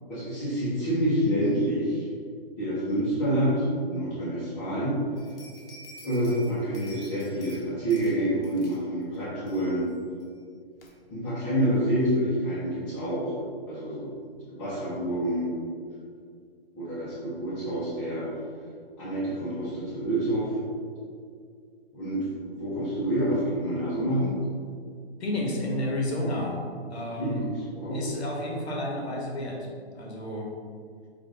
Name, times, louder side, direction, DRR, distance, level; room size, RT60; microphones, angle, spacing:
voice 1, 0.1-2.1 2.6-5.0 6.0-9.9 11.1-13.4 13.7-14.1 14.5-15.5 16.7-18.3 19.0-20.6 21.9-24.3 27.2-28.0, right 1 dB, 15° left, -13 dB, 0.8 m, -27 dB
sound 1, 5.2-7.6 7.9-8.1 8.4-8.8 9.1-9.2 9.5-9.9 10.2-10.3 10.8-10.9, equal, 60° left, 1.0 m, -48 dB
voice 2, 25.2-26.6 26.9-27.5 27.9-29.7 29.9-30.5, left 1 dB, 80° left, -1 dB, 1.3 m, -31 dB
5.0 x 2.6 x 3.7 m, 2.2 s
hypercardioid pair, 160°, 32 cm